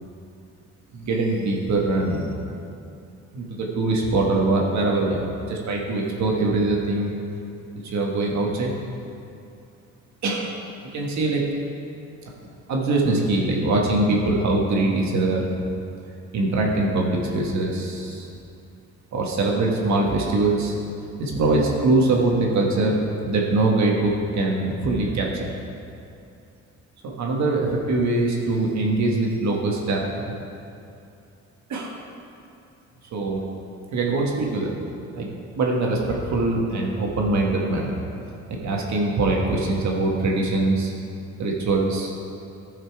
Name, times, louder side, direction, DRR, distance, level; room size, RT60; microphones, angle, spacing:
voice 1, 0.9-2.4 3.3-7.1 7.8-8.7 10.2-10.5 10.9-11.4 12.7-15.5 16.3-18.3 19.1-20.7 21.2-23.0 23.3-25.5 27.0-30.3 31.7-32.0 33.1-33.4 33.9-34.8 35.1-35.3 35.6-37.9 38.5-40.9 41.4-42.1, right 2 dB, 65° right, -1 dB, 1.5 m, -23 dB
11.5 x 5.7 x 4.7 m, 2.6 s
cardioid pair, 90°, 30 cm